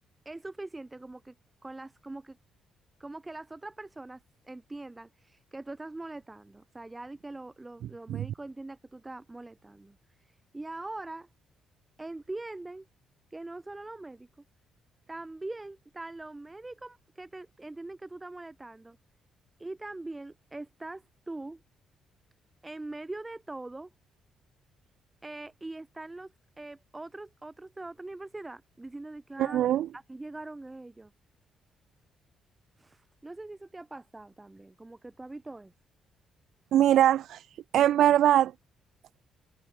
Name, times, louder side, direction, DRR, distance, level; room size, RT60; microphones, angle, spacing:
voice 1, 0.3-1.3 1.6-2.4 3.0-11.3 12.0-12.9 13.3-14.3 15.1-19.0 19.6-21.6 22.6-23.9 25.2-29.6 29.9-31.1 32.8-35.7, right 2 dB, 15° right, 7.0 m, -42 dB
voice 2, 29.4-29.9 36.7-38.5, right 11 dB, 75° right, 1.2 m, -22 dB
cardioid pair, 90°, 0 cm